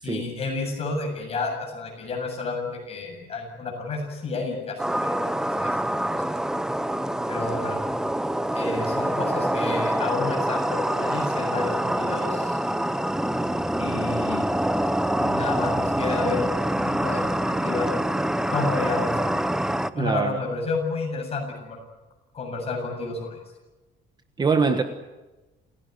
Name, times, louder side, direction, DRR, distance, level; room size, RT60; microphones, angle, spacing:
voice 1, 0.0-5.8 6.1-6.2 7.3-7.8 8.5-12.6 13.8-14.5 15.1-16.5 16.8-17.9 18.5-19.4 19.9-21.8 22.3-23.4, left 3 dB, 35° left, 2 dB, 7.6 m, -31 dB
sound 1, 4.8-19.9, right 1 dB, 5° right, 0.7 m, -25 dB
voice 2, 19.9-20.4 24.4-24.8, right 5 dB, 20° right, 8 dB, 1.3 m, -23 dB
28.0 x 17.0 x 9.5 m, 1.1 s
cardioid pair, 165°, 19 cm